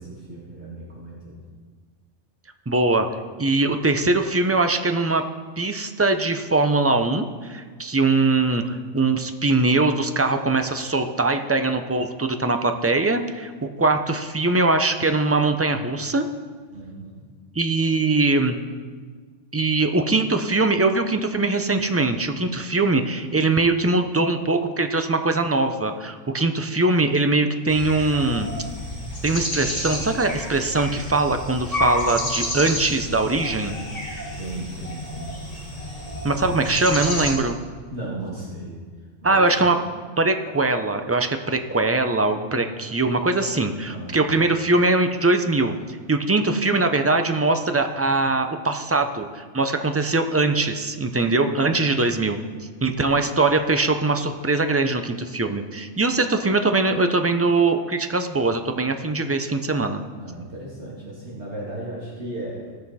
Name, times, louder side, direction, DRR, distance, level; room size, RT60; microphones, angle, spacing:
voice 1, 0.0-1.4 16.7-17.1 34.4-35.3 37.9-38.8 39.2-39.7 42.3-42.6 43.8-44.4 60.2-62.6, right 2 dB, 60° right, -6 dB, 2.6 m, -36 dB
voice 2, 2.7-3.1 3.4-5.2 5.6-16.3 17.6-18.5 19.5-28.5 29.2-33.7 36.2-37.6 39.2-39.8 40.2-45.8 46.1-52.4 52.8-60.0, right 3 dB, 20° right, 7 dB, 0.3 m, -21 dB
sound 1, 27.7-37.4, left 1 dB, 30° left, 2.2 m, -30 dB
17.0 x 6.4 x 4.2 m, 1.5 s
omnidirectional pair, 1.3 m